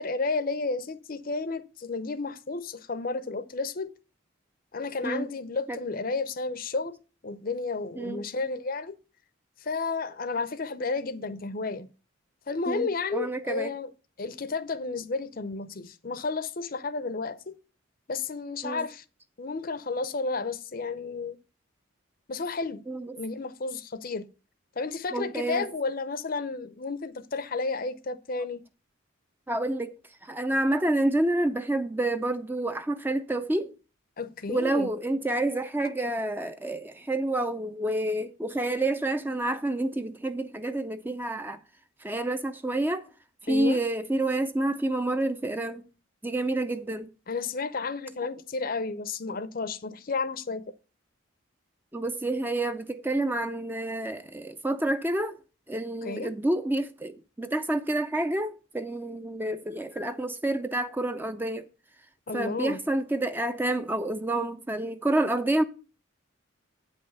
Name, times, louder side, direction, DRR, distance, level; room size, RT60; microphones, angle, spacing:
voice 1, 0.0-3.9 4.7-9.0 9.6-11.9 12.5-13.9 14.2-17.6 18.1-19.0 19.4-21.4 22.3-22.8 23.2-24.3 24.8-28.6 34.2-34.9 43.5-43.8 47.3-50.6 56.0-56.3 62.3-62.8, left 3 dB, 45° left, 0.6 m, -32 dB
voice 2, 12.7-13.7 18.6-18.9 22.9-23.2 25.1-25.7 29.5-29.9 30.2-33.7 34.5-41.6 42.0-43.0 43.4-45.8 46.2-47.1 51.9-55.4 55.7-61.7 62.3-65.6, right 1 dB, 10° right, 0.4 m, -28 dB
8.5 x 5.6 x 6.5 m
head